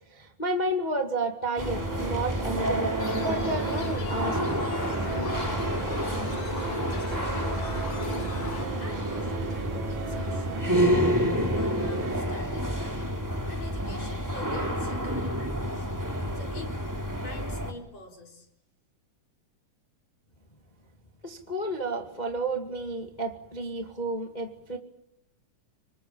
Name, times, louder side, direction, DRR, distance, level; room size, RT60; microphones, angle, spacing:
voice 1, 0.1-4.4 5.2-5.4 21.2-24.8, right 2 dB, 15° left, 3 dB, 1.9 m, -31 dB
sound 1, 1.6-17.7, equal, 5° right, 2.3 m, -29 dB
sound 2, 1.6-12.2, right 8 dB, 80° right, 1.0 m, -37 dB
sound 3, 3.0-8.7, left 5 dB, 75° left, 4.4 m, -39 dB
voice 2, 8.7-10.9 11.5-13.1 13.5-15.9 16.3-16.9 17.2-18.5, left 2 dB, 50° left, 3 dB, 5.7 m, -46 dB
27.0 x 24.5 x 7.3 m, 0.84 s
omnidirectional pair, 3.8 m